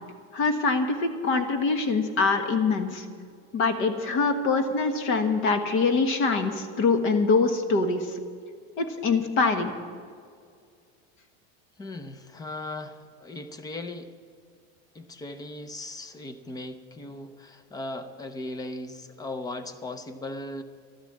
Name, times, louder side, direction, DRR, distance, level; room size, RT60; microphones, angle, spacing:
voice 1, 0.3-3.0 3.5-8.2 8.8-9.7, left 4 dB, 40° left, 8 dB, 1.5 m, -24 dB
voice 2, 11.8-14.2 14.9-20.6, left 2 dB, 10° left, 10 dB, 0.7 m, -38 dB
12.5 x 12.5 x 7.4 m, 2.2 s
cardioid pair, 165°, 32 cm